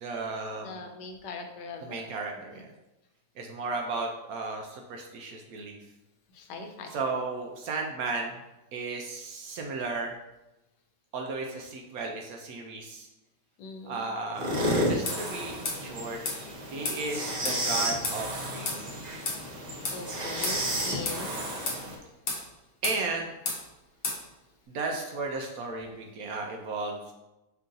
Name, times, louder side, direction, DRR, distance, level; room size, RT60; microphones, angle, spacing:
voice 1, 0.0-0.8 1.8-2.7 3.4-5.8 6.9-8.4 8.7-10.2 11.1-13.1 13.8-14.6 14.9-16.2 16.7-18.8 20.7-21.0 22.8-23.3 24.7-27.1, right 3 dB, 70° right, 2 dB, 0.9 m, -34 dB
voice 2, 0.6-2.1 2.5-2.6 6.3-7.0 13.6-14.1 19.9-21.5, left 3 dB, 85° left, 4 dB, 1.3 m, -41 dB
sound 1, 14.4-22.0, equal, 50° right, 0.5 m, -32 dB
sound 2, 15.1-15.2 15.7-15.8 16.3-16.4 16.8-17.0 17.4-17.6 18.0-18.2 18.7-18.8 19.3-19.4 19.8-20.0 20.4-20.6 21.1-21.2 21.7-21.8 22.3-22.4 22.8-23.0 23.5-23.6 24.0-24.2, left 3 dB, 60° left, 1.1 m, -31 dB
5.5 x 2.6 x 3.8 m, 0.98 s
omnidirectional pair, 1.8 m